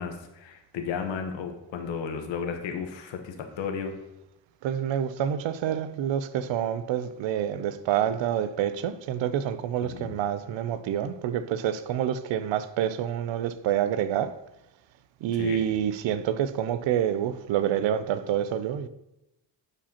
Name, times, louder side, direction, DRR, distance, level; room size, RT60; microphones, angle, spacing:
voice 1, 0.0-3.9 9.8-10.2 15.3-15.7, left 6 dB, 90° left, 1.2 m, -34 dB
voice 2, 4.6-14.4 15.2-18.9, right 10 dB, 85° right, 0.6 m, -27 dB
11.5 x 4.9 x 2.9 m
cardioid pair, 110°, 43 cm